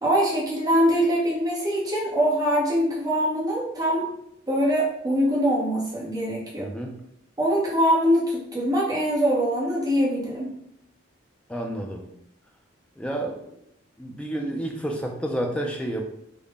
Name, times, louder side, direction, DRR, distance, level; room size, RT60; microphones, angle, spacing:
voice 1, 0.0-4.1 4.5-6.7 7.4-10.5, equal, 20° right, -4 dB, 0.8 m, -23 dB
voice 2, 6.6-6.9 11.5-12.1 13.0-13.6 14.0-16.0, right 1 dB, 5° left, 1 dB, 0.3 m, -30 dB
3.7 x 2.1 x 3.5 m, 0.74 s
head